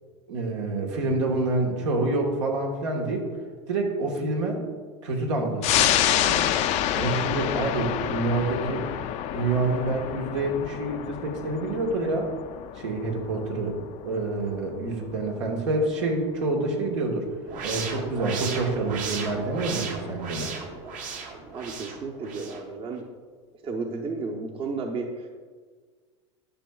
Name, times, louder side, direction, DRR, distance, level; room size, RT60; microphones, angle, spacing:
voice 1, 0.3-3.3 3.7-4.6 5.0-6.5 6.9-8.9 9.3-12.3 12.8-13.8 14.0-17.3 17.6-20.5, right 2 dB, 85° right, 0 dB, 1.5 m, -27 dB
sound 1, 5.6-16.6 17.0-17.1, left 11 dB, 50° left, 0.5 m, -28 dB
sound 2, 17.5-22.6, right 5 dB, 55° right, 1.2 m, -35 dB
voice 2, 21.5-23.0 23.6-25.4, right 4 dB, 35° right, 2 dB, 0.8 m, -33 dB
11.0 x 5.9 x 2.3 m, 1.5 s
supercardioid pair, 105°, 15 cm